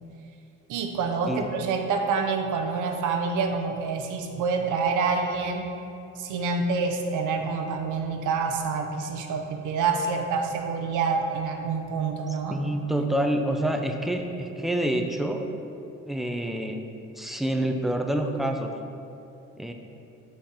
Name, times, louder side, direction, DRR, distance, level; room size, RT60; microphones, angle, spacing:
voice 1, 0.7-5.7 6.2-12.6, right 4 dB, 85° right, 4 dB, 0.7 m, -27 dB
voice 2, 12.5-15.5 16.1-16.9 17.2-18.8 19.6-19.7, right 1 dB, ahead, 4 dB, 0.5 m, -27 dB
5.7 x 4.4 x 4.9 m, 2.7 s
cardioid pair, 90°, 30 cm